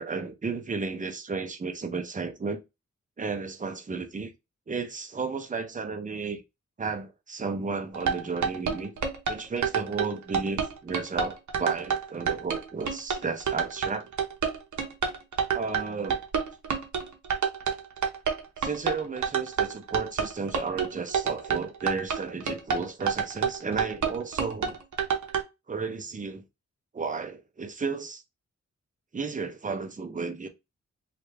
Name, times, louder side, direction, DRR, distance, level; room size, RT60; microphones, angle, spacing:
voice 1, 0.0-2.6 3.2-4.3 4.7-6.4 6.8-8.9 9.3-14.1 15.5-16.2 18.6-24.8 25.7-26.4 26.9-28.2 29.1-30.5, right 4 dB, 25° right, 0.5 m, -33 dB
sound 1, 7.9-25.4, right 6 dB, 80° right, 0.8 m, -28 dB
3.1 x 2.4 x 3.3 m
wide cardioid pair, 125°, 29 cm